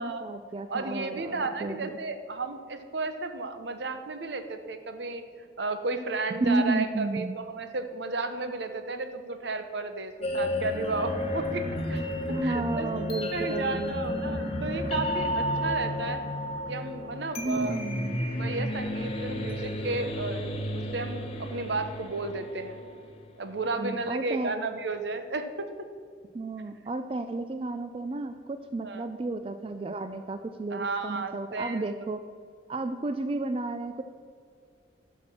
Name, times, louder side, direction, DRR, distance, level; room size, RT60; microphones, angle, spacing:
voice 1, 0.0-2.0 6.4-7.4 12.3-14.0 17.4-18.2 23.8-24.5 26.3-32.2 32.7-34.0, right 2 dB, 30° right, 8 dB, 0.3 m, -32 dB
voice 2, 0.7-13.0 13.3-16.2 16.7-17.8 18.4-22.8 23.4-25.9 28.8-29.0 30.7-31.8, right 3 dB, 70° right, 8 dB, 0.9 m, -33 dB
sound 1, 10.2-23.2, left 1 dB, 30° left, 1.0 m, -32 dB
11.5 x 5.9 x 6.1 m, 2.1 s
head